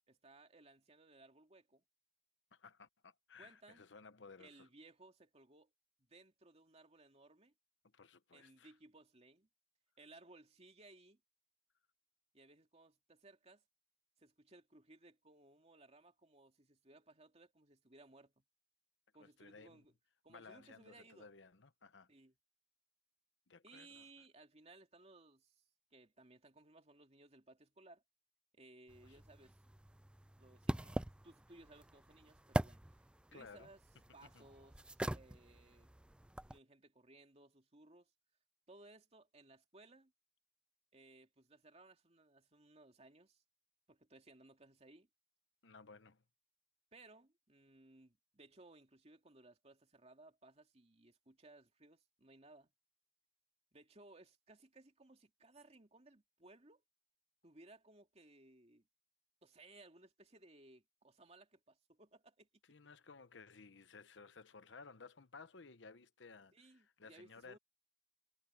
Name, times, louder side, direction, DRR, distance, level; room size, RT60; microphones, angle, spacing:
voice 1, 0.1-1.8 3.4-3.9 4.4-5.7 6.0-7.5 8.3-9.5 10.0-11.2 12.3-13.6 14.2-18.4 19.1-19.9 20.2-21.3 22.1-22.3 23.6-25.6 25.9-28.0 28.5-29.6 30.4-33.1 33.3-33.8 34.1-35.9 36.5-38.1 38.7-40.1 40.9-43.4 43.9-45.1 46.9-52.7 53.7-56.8 57.4-58.9 59.4-62.5 66.5-67.6, right 2 dB, 35° right, 2.4 m, -62 dB
voice 2, 2.5-4.7 7.9-8.7 19.2-19.8 20.3-22.1 23.5-24.1 29.0-29.2 33.3-33.7 34.3-34.5 45.6-46.2 62.7-67.6, left 4 dB, 85° left, 1.0 m, -58 dB
sound 1, 28.9-36.6, right 1 dB, 5° right, 0.3 m, -43 dB
head